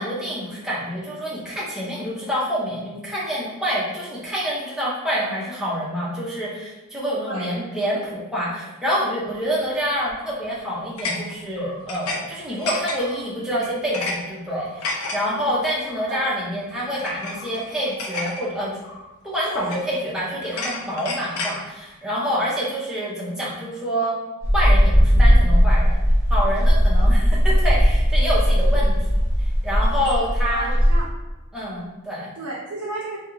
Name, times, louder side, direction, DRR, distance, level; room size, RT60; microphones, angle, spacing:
voice 1, 0.0-18.7 19.2-24.1 24.5-29.2 29.6-30.7 31.5-32.3, equal, ahead, -7 dB, 0.6 m, -27 dB
sound 1, 10.1-10.4 11.0-12.2 12.4-13.2 13.6-14.2 14.5-15.2 15.9-16.1 16.9-18.4 18.8-19.0 19.4-20.0 20.5-21.6, left 2 dB, 85° left, 0.5 m, -31 dB
voice 2, 15.7-16.3 30.5-31.1 32.4-33.2, right 2 dB, 70° right, -4 dB, 0.5 m, -33 dB
sound 2, 24.4-31.0, equal, 40° left, 0.8 m, -17 dB
2.4 x 2.3 x 3.0 m, 1.1 s
head